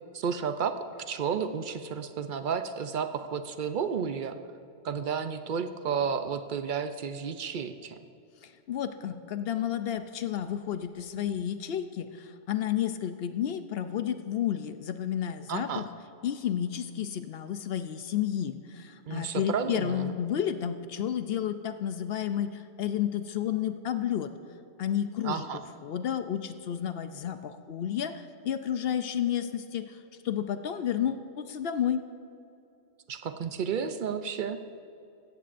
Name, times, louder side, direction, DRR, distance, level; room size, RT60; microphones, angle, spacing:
voice 1, 0.1-0.8 1.1-4.4 4.8-8.0 15.5-15.9 19.1-20.2 25.2-25.6 33.1-34.6, right 6 dB, 55° right, 9 dB, 0.6 m, -32 dB
voice 2, 8.4-15.9 16.2-24.3 24.8-25.5 25.8-30.0 30.2-32.0, left 10 dB, 60° left, 10 dB, 0.7 m, -31 dB
16.0 x 14.0 x 2.5 m, 2.7 s
omnidirectional pair, 1.3 m